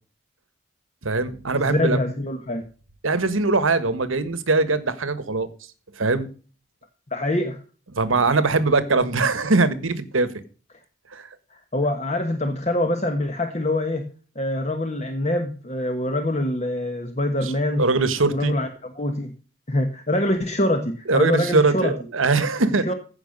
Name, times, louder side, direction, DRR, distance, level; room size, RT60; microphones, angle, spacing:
voice 1, 1.0-2.0 3.0-5.5 5.9-6.3 7.9-10.3 11.1-11.3 17.4-18.5 21.1-22.9, right 3 dB, 90° right, 14 dB, 1.4 m, -21 dB
voice 2, 1.5-2.6 7.1-7.6 11.5-14.1 14.3-17.9 18.3-18.7 19.0-19.3 19.7-21.9 22.9-23.0, left 1 dB, 35° left, 5 dB, 1.2 m, -24 dB
15.5 x 5.8 x 5.2 m, 0.38 s
head